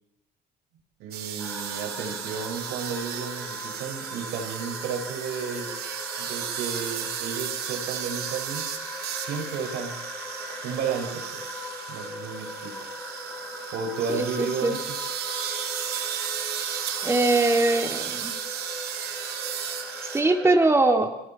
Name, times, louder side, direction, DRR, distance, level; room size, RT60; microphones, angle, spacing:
voice 1, 1.0-5.7 6.2-8.7 9.2-10.0 10.6-12.7 13.7-15.0, right 6 dB, 85° right, 4 dB, 5.7 m, -33 dB
sound 1, 1.1-20.2, right 9 dB, 70° right, 2.9 m, -34 dB
sound 2, 1.4-20.6, left 2 dB, 15° left, 5.7 m, -39 dB
voice 2, 14.1-14.7 17.0-18.3 20.1-21.1, right 2 dB, 15° right, 4 dB, 2.7 m, -22 dB
29.5 x 21.5 x 4.4 m, 0.85 s
cardioid pair, 110°, 17 cm